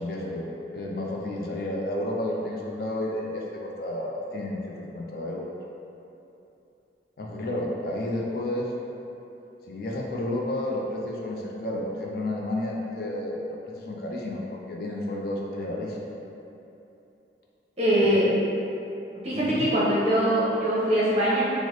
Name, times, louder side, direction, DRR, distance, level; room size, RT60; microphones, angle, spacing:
voice 1, 0.0-5.5 7.2-8.7 9.7-16.1 18.0-18.1 19.3-19.7, left 1 dB, 55° left, -2 dB, 0.4 m, -31 dB
voice 2, 17.8-18.2 19.2-21.4, right 1 dB, 35° right, -8 dB, 0.8 m, -22 dB
3.1 x 2.0 x 3.8 m, 2.8 s
head